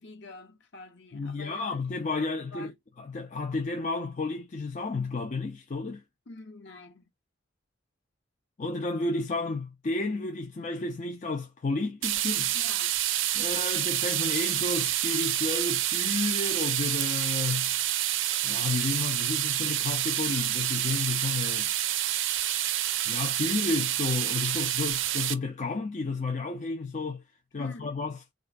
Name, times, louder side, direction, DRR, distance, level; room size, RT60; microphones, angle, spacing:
voice 1, 0.0-1.8 2.4-2.7 6.3-7.1 12.5-13.0 27.6-28.0, left 2 dB, 65° left, 1.0 m, -46 dB
voice 2, 1.1-6.0 8.6-12.5 13.3-17.7 18.4-21.7 23.1-27.2 27.5-28.2, left 3 dB, 40° left, 0.5 m, -32 dB
sound 1, 12.0-25.3, right 12 dB, 75° right, 0.4 m, -28 dB
3.2 x 2.4 x 2.5 m
head